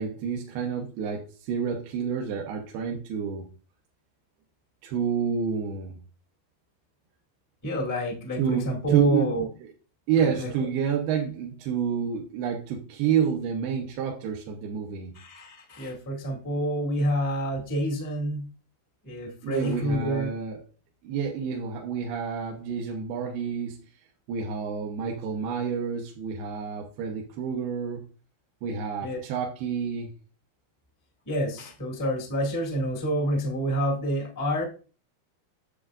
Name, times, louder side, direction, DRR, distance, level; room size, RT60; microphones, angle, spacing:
voice 1, 0.0-3.5 4.8-6.0 8.4-9.3 9.6-9.7 10.1-15.1 19.4-20.6 21.0-23.8 24.3-28.0 28.6-30.1, right 7 dB, 85° right, 0 dB, 2.9 m, -29 dB
voice 2, 7.6-9.4 10.4-10.5 15.1-18.5 19.0-20.3 29.0-29.2 31.2-34.6, equal, 10° left, 0 dB, 0.9 m, -28 dB
10.0 x 7.2 x 2.5 m, 0.35 s
omnidirectional pair, 4.5 m